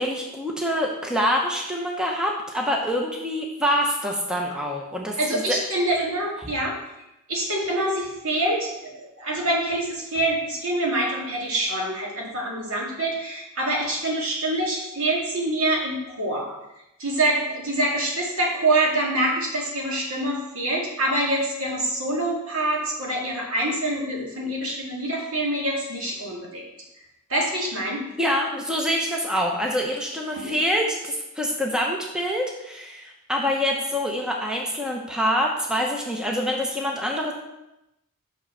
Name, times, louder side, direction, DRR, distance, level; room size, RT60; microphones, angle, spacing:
voice 1, 0.0-5.6 28.2-37.3, equal, 5° right, -1 dB, 0.9 m, -25 dB
voice 2, 5.2-6.8 7.3-16.5 17.0-26.6 27.3-28.1 30.3-30.6, right 1 dB, 65° right, -2 dB, 2.1 m, -25 dB
5.9 x 5.6 x 5.6 m, 0.91 s
head